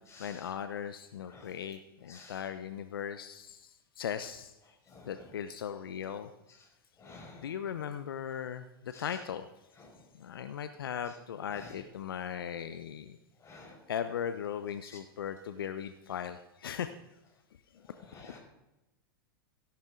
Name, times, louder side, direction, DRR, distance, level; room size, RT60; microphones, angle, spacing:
voice 1, 0.2-3.7 4.0-4.5 5.1-6.3 7.4-9.4 10.2-13.2 13.9-16.9 18.1-18.4, left 8 dB, 75° left, 10 dB, 0.7 m, -38 dB
voice 2, 7.0-7.5 8.9-9.0 11.5-11.7 13.4-13.8 18.1-18.4, left 3 dB, 25° left, 1 dB, 5.2 m, -51 dB
17.0 x 11.5 x 3.8 m, 0.96 s
hypercardioid pair, 100°, 12 cm